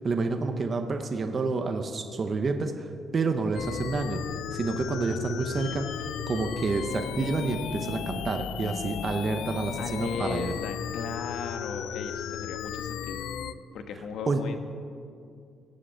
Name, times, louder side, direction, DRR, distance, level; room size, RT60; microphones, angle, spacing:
voice 1, 0.0-4.2 4.5-10.5 14.3-14.4, right 3 dB, 30° right, 6 dB, 0.8 m, -29 dB
sound 1, 3.5-13.5, left 9 dB, 90° left, 0.5 m, -35 dB
sound 2, 5.6-9.6 10.0-10.1 13.0-13.1, left 6 dB, 20° left, 2.1 m, -51 dB
voice 2, 9.8-13.3 13.7-14.7, left 5 dB, 75° left, 7 dB, 1.2 m, -37 dB
18.0 x 7.5 x 7.5 m, 2.4 s
cardioid pair, 160°, 0 cm